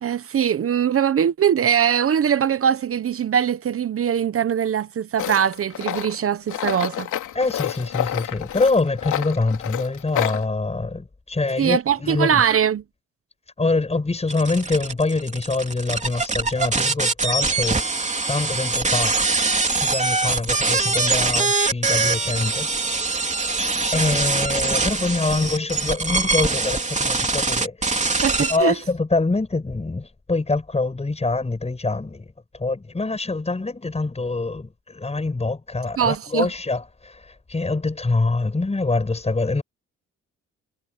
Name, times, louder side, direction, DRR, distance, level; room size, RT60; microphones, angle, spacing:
voice 1, 0.0-7.1 11.6-12.8 28.2-28.7 36.0-36.5, right 8 dB, 50° right, 1.1 m, -21 dB
Tools, 5.2-10.4, left 11 dB, 75° left, 3.5 m, -29 dB
voice 2, 7.3-12.4 13.6-17.8 18.3-19.2 19.7-22.7 23.9-28.2 28.5-32.2 32.5-39.6, left 3 dB, 20° left, 7.2 m, -25 dB
sound 1, 14.3-28.6, right 3 dB, 25° right, 3.4 m, -23 dB
cardioid pair, 90°, 30 cm